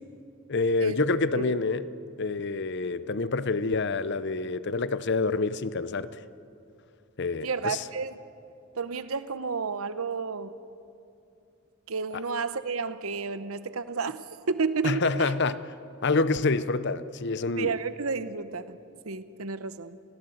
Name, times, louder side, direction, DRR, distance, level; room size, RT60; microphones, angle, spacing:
voice 1, 0.5-1.9 2.2-6.2 7.2-7.8 14.8-15.7 16.0-17.7, left 3 dB, 50° left, 14 dB, 0.7 m, -27 dB
voice 2, 7.4-8.2 8.7-10.5 11.9-15.3 17.6-18.8 19.1-20.0, right 4 dB, 70° right, 13 dB, 0.9 m, -31 dB
28.5 x 17.0 x 7.9 m, 2.6 s
head